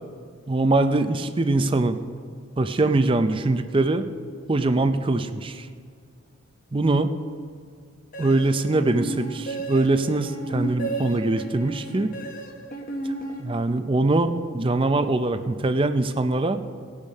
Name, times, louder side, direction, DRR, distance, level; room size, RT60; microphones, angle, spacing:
voice 1, 0.5-2.0 2.6-4.1 4.5-5.7 6.7-7.1 8.2-12.1 13.0-13.1 13.4-16.6, right 2 dB, 25° right, 10 dB, 0.5 m, -22 dB
sound 1, 8.1-14.0, right 2 dB, 40° left, 1.2 m, -33 dB
19.5 x 7.2 x 5.4 m, 2.1 s
head